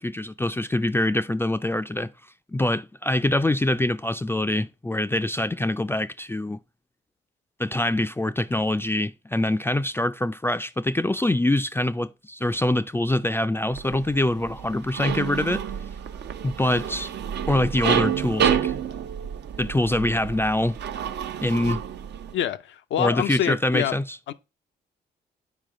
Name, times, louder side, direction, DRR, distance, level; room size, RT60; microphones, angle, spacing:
voice 1, 0.0-2.1 2.5-6.6 7.6-15.6 16.4-17.1 17.5-18.7 19.6-20.8 21.4-21.8 23.0-24.0, left 1 dB, 10° left, 0.4 m, -24 dB
sound 1, 13.7-22.3, right 8 dB, 65° right, 0.6 m, -29 dB
voice 2, 22.3-23.9 24.3-24.4, left 11 dB, 75° left, 0.5 m, -26 dB
7.5 x 4.8 x 3.7 m
supercardioid pair, 50°, 19 cm